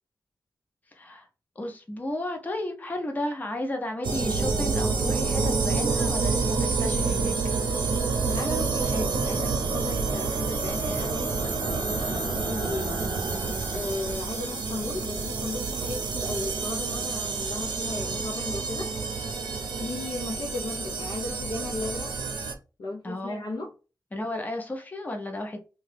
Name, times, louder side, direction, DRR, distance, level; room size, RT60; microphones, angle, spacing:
voice 1, 0.9-1.3 1.6-7.3 23.0-23.4 24.1-25.7, left 1 dB, 20° left, 0.5 m, -33 dB
sound 1, 4.0-22.5, right 4 dB, 85° right, 0.6 m, -28 dB
voice 2, 8.3-13.0 13.7-18.9 19.8-22.1 22.8-23.7, left 2 dB, 80° left, 0.6 m, -35 dB
2.8 x 2.2 x 3.2 m
wide cardioid pair, 155°, 8 cm